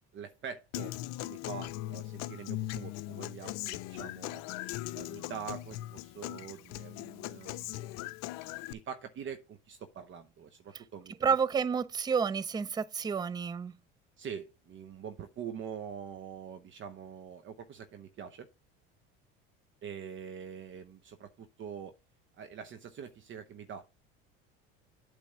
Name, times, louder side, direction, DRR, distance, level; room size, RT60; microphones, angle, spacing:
voice 1, 0.1-0.9 1.2-4.4 4.9-8.0 8.7-11.4 14.2-18.5 19.8-21.9 22.4-23.9, right 7 dB, 40° right, 0.9 m, -44 dB
Human voice / Acoustic guitar, 0.7-8.7, left 16 dB, 65° left, 0.5 m, -39 dB
voice 2, 11.2-13.7, right 6 dB, 15° right, 0.4 m, -30 dB
8.5 x 3.4 x 6.5 m
supercardioid pair, 90°, 29 cm